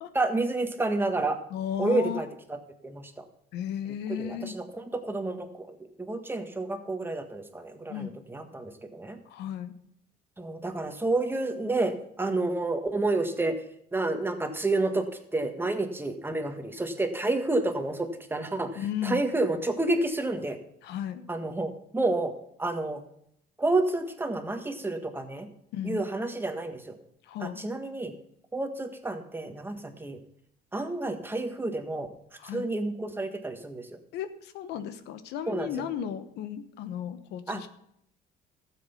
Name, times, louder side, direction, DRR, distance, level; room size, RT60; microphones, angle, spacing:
voice 1, 0.1-1.4 1.8-2.3 2.8-3.2 4.1-9.2 10.4-13.5 13.9-20.6 21.3-22.3 22.6-23.0 23.6-25.5 25.8-27.0 27.4-28.1 28.5-30.2 30.7-32.1 32.5-34.0 35.5-35.7 37.5-37.6, right 2 dB, 15° right, 7 dB, 1.6 m, -29 dB
voice 2, 1.5-2.2 3.5-4.5 7.9-8.1 9.3-9.7 18.8-19.2 20.8-21.2 25.7-26.0 27.2-27.6 32.4-32.7 34.1-37.7, left 9 dB, 80° left, 11 dB, 1.1 m, -34 dB
13.5 x 7.7 x 5.8 m, 0.72 s
cardioid pair, 110°, 17 cm